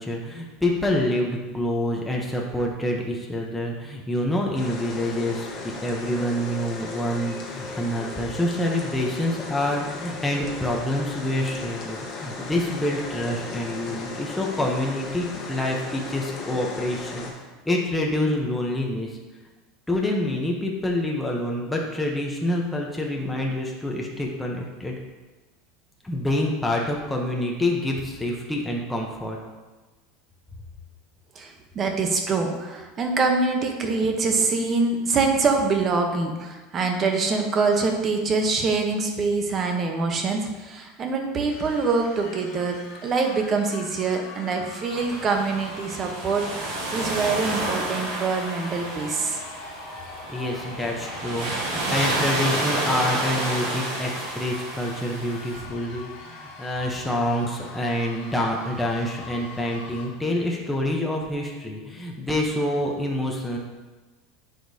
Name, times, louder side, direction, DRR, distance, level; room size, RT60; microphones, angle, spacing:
voice 1, 0.0-17.3 17.6-19.1 19.9-24.9 26.0-29.4 50.3-63.6, left 1 dB, 5° left, -1 dB, 0.8 m, -27 dB
sound 1, 4.5-17.3, left 3 dB, 30° left, 1.3 m, -36 dB
voice 2, 31.3-49.4, right 4 dB, 25° right, 3 dB, 1.0 m, -25 dB
sound 2, 41.5-60.1, left 3 dB, 70° left, 1.6 m, -42 dB
sound 3, 44.9-55.6, right 2 dB, 70° right, 2.1 m, -30 dB
9.7 x 5.1 x 2.8 m, 1.2 s
supercardioid pair, 150°, 0 cm